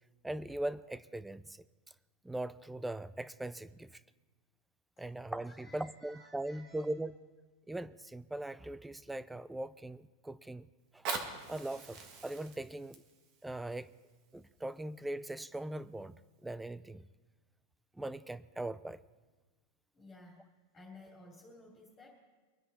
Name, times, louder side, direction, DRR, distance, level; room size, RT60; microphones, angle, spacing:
voice 1, 0.2-1.6 2.2-4.0 5.0-7.1 7.7-10.7 10.9-11.1 11.5-13.0 13.4-13.9 14.3-16.1 16.4-17.1 18.0-19.0, right 1 dB, 5° right, 17 dB, 0.3 m, -40 dB
voice 2, 5.4-6.9 19.9-20.5 20.7-22.1, left 2 dB, 15° left, -4 dB, 3.1 m, -55 dB
Fire, 10.8-15.8 16.4-16.5, right 4 dB, 35° right, 1.7 m, -44 dB
24.5 x 10.0 x 4.2 m, 1.3 s
supercardioid pair, 165°, 0 cm